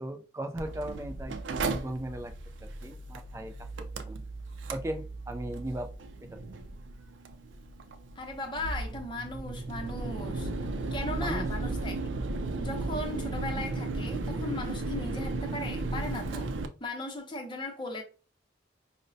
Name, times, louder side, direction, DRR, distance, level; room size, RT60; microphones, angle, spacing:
voice 1, 0.0-2.3 2.6-3.5 4.1-4.2 4.7-5.9 6.3-6.4 11.2-11.5, right 1 dB, 15° right, 0.3 m, -37 dB
Mechanical fan, 0.6-16.7, right 2 dB, 80° right, 0.4 m, -35 dB
voice 2, 8.2-10.5 10.9-12.0 12.6-16.5 16.8-18.0, left 1 dB, 25° left, 0.7 m, -37 dB
5.1 x 2.1 x 2.6 m
head